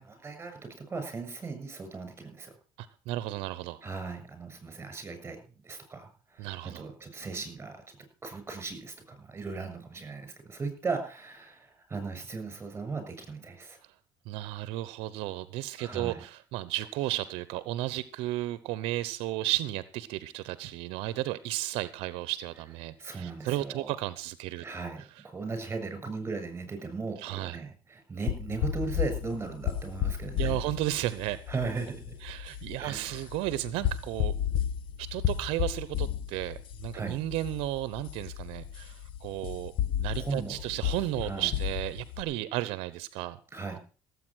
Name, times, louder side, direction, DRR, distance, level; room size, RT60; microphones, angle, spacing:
voice 1, 0.0-2.5 3.8-5.4 5.6-8.0 8.2-13.8 15.8-16.2 23.0-24.0 24.6-30.6 31.5-32.2 32.8-33.2 36.9-37.2 40.2-40.6 40.8-40.9 41.2-41.5 43.5-43.8, right 4 dB, 25° right, 8 dB, 6.8 m, -37 dB
voice 2, 2.8-3.8 6.4-6.9 13.8-13.9 14.3-24.6 27.2-27.6 30.4-31.4 32.2-34.3 35.0-39.7 40.0-43.4, right 16 dB, 80° right, 16 dB, 0.8 m, -33 dB
sound 1, 28.3-42.2, left 10 dB, 65° left, 1.2 m, -33 dB
17.0 x 8.4 x 6.2 m, 0.39 s
cardioid pair, 100°, 9 cm